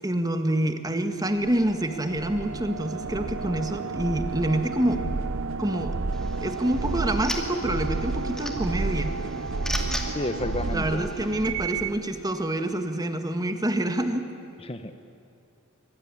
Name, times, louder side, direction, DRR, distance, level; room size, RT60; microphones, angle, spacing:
voice 1, 0.0-5.0 5.6-5.9 6.4-9.1 10.7-14.2, right 1 dB, 20° right, 7 dB, 1.8 m, -27 dB
sound 1, 1.4-12.0, right 3 dB, 85° right, 0.8 m, -31 dB
sound 2, 6.1-11.5, equal, 5° left, 2.4 m, -38 dB
voice 2, 10.1-11.0 14.6-15.1, left 2 dB, 30° left, 9 dB, 1.0 m, -31 dB
25.0 x 23.5 x 9.9 m, 2.6 s
head